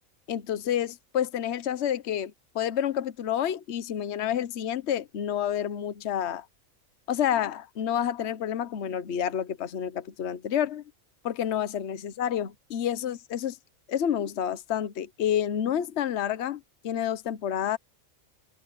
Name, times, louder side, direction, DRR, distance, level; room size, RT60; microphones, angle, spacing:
voice 1, 0.3-6.4 7.1-10.8 11.2-13.6 13.9-17.8, left 9 dB, 60° left, 1.1 m, -29 dB
omnidirectional pair, 1.4 m